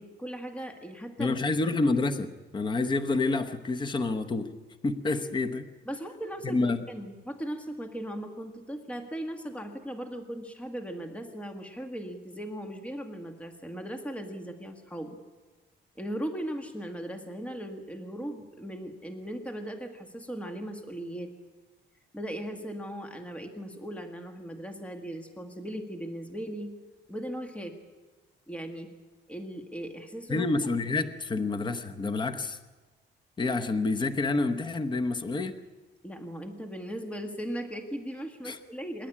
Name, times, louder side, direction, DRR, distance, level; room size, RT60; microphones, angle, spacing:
voice 1, 0.0-1.3 5.9-6.6 6.9-15.2 16.0-21.3 22.1-26.7 27.1-27.8 28.5-28.9 29.3-30.5 36.0-39.1, right 1 dB, 5° left, 5 dB, 1.6 m, -38 dB
voice 2, 1.2-4.5 4.8-5.7 6.4-6.8 30.3-32.6 33.4-35.6 38.4-38.6, left 3 dB, 25° left, 8 dB, 1.0 m, -28 dB
26.0 x 11.5 x 9.9 m, 1.3 s
cardioid pair, 165°, 20 cm